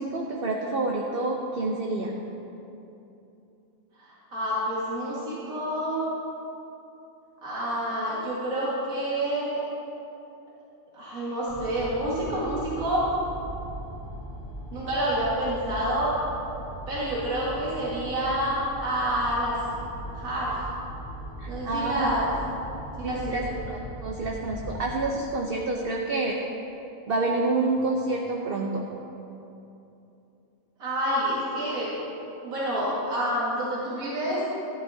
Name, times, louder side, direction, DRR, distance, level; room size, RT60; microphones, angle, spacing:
voice 1, 0.0-2.1 21.4-22.1 23.0-26.4 27.1-28.9, right 2 dB, 50° right, 0 dB, 0.8 m, -28 dB
voice 2, 4.0-6.1 7.4-9.6 10.9-13.1 14.7-16.1 16.9-19.7 20.1-20.5 21.5-22.3 23.0-23.6 30.8-31.9 32.4-34.4, right 1 dB, 70° right, -8 dB, 2.3 m, -28 dB
sound 1, 11.5-25.0, right 1 dB, 55° left, 1.9 m, -39 dB
13.5 x 12.5 x 2.7 m, 2.9 s
omnidirectional pair, 1.5 m